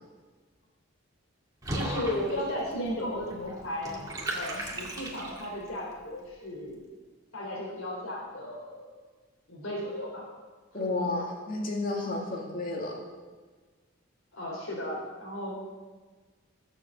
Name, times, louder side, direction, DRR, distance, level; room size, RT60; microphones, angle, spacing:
Water / Bathtub (filling or washing), 1.6-5.7, right 1 dB, 15° right, 2.1 m, -37 dB
voice 1, 1.7-3.9 4.3-6.8 7.3-8.9 9.5-10.3 10.9-11.2 14.3-15.6, left 1 dB, 90° left, -4 dB, 3.5 m, -35 dB
voice 2, 10.7-13.0, left 2 dB, 45° left, -1 dB, 2.5 m, -32 dB
15.0 x 7.3 x 7.6 m, 1.4 s
head